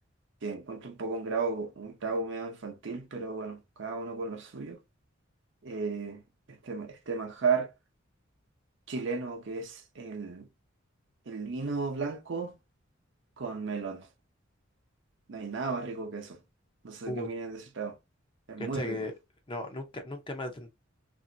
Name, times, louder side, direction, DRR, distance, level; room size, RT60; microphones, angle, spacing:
voice 1, 0.4-4.8 5.6-6.2 6.5-7.7 8.9-10.5 11.3-12.5 13.4-14.1 15.3-16.4 16.8-18.0 18.5-19.0, right 4 dB, 65° right, 0.7 m, -34 dB
voice 2, 18.6-19.1 19.5-20.7, left 1 dB, 25° left, 0.6 m, -36 dB
3.0 x 2.6 x 2.6 m
head